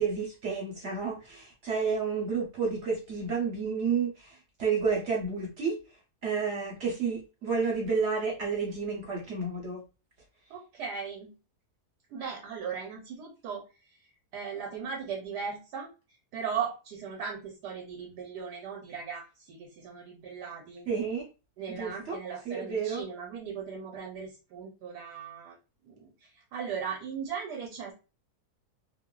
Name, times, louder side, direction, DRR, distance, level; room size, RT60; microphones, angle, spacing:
voice 1, 0.0-5.8 6.2-9.8 20.9-21.3 21.7-22.2 22.5-23.0, right 5 dB, 60° right, -2 dB, 0.8 m, -30 dB
voice 2, 10.5-11.3 12.1-13.6 14.3-15.9 16.3-20.9 21.6-25.6 25.8-27.9, right 6 dB, 85° right, 0 dB, 1.2 m, -38 dB
2.9 x 2.1 x 2.2 m, 0.32 s
omnidirectional pair, 1.7 m